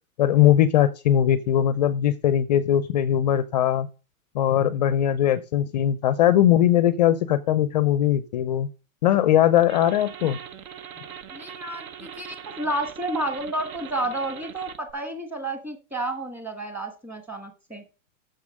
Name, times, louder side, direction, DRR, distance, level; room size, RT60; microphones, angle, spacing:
voice 1, 0.2-3.9 4.3-8.7 9.0-10.4, left 11 dB, 30° left, 15 dB, 0.4 m, -20 dB
sound 1, 9.6-14.9, right 9 dB, 75° right, 1.2 m, -41 dB
voice 2, 11.3-17.8, right 1 dB, 5° right, 6 dB, 1.3 m, -31 dB
7.3 x 6.9 x 6.3 m, 0.33 s
hypercardioid pair, 150°, 43 cm